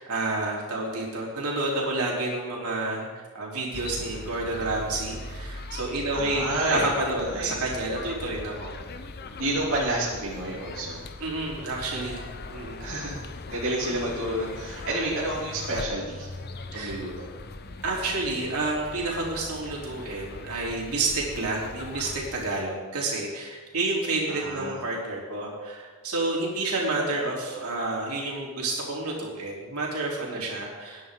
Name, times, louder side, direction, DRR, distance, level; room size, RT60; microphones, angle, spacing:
voice 1, 0.0-6.4 6.7-8.8 11.2-12.8 16.7-17.0 17.8-31.1, right 2 dB, 80° right, -4 dB, 3.9 m, -29 dB
sound 1, 3.7-22.5, left 3 dB, 45° left, 0.8 m, -40 dB
voice 2, 6.1-6.9 7.2-7.6 9.4-11.0 12.8-13.2 13.5-16.3 16.7-17.3 24.3-24.8 30.3-30.5, right 1 dB, 60° right, -8 dB, 3.0 m, -30 dB
21.0 x 10.5 x 3.9 m, 1.4 s
head